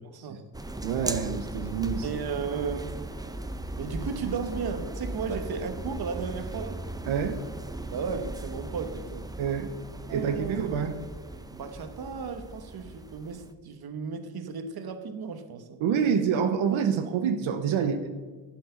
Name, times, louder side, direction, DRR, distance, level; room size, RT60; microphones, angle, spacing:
voice 1, 0.1-0.4 2.0-3.0 3.8-6.8 7.9-9.3 10.1-10.6 11.5-15.8, right 5 dB, 50° right, 1.3 m, -35 dB
sound 1, 0.5-13.5, right 2 dB, 10° right, 0.7 m, -38 dB
voice 2, 0.8-2.1 5.3-5.4 7.1-7.4 9.4-9.7 10.1-11.0 15.8-18.1, right 7 dB, 90° right, 1.0 m, -27 dB
11.5 x 8.3 x 5.7 m
cardioid pair, 95°, 46 cm